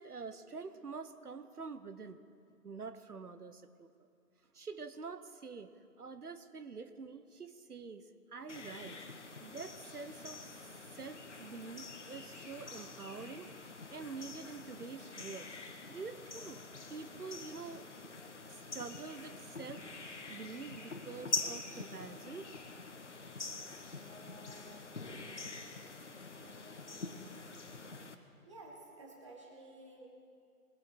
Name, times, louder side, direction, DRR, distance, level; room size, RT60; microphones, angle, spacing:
voice 1, 0.0-2.2 2.6-4.1 4.5-5.7 6.0-9.0 9.4-10.6 10.9-15.5 15.9-17.9 18.5-22.5, right 4 dB, 75° right, 10 dB, 1.0 m, -47 dB
sound 1, 8.5-28.1, left 3 dB, 50° left, 1.2 m, -45 dB
voice 2, 26.4-27.2 28.4-30.1, right 2 dB, 20° right, -1 dB, 1.5 m, -54 dB
22.0 x 8.3 x 4.3 m, 2.4 s
figure-of-eight pair, 160°, 45 cm